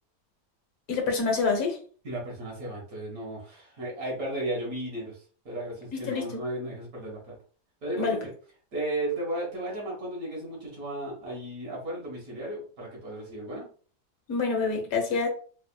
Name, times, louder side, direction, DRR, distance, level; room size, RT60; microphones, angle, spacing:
voice 1, 0.9-1.8 5.9-6.4 8.0-8.2 14.3-15.3, left 4 dB, 60° left, 2 dB, 1.3 m, -27 dB
voice 2, 2.0-5.2 5.5-7.3 7.8-8.2 8.7-13.7, right 1 dB, 60° right, -3 dB, 1.7 m, -34 dB
4.0 x 2.7 x 2.2 m, 0.42 s
omnidirectional pair, 1.8 m